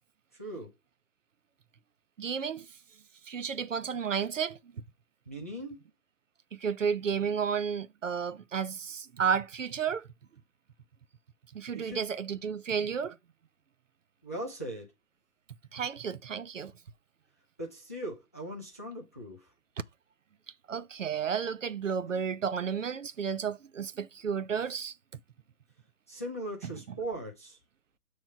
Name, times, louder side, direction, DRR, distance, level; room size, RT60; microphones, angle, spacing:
voice 1, 0.4-0.7 5.3-5.8 11.7-12.0 14.2-14.9 17.6-19.5 26.1-27.6, right 1 dB, 10° left, 0.5 m, -39 dB
voice 2, 2.2-2.7 3.3-4.8 6.5-10.1 11.5-13.2 15.7-16.7 20.7-24.9, right 7 dB, 55° right, 0.6 m, -32 dB
7.8 x 3.1 x 5.7 m
figure-of-eight pair, 140°, 46 cm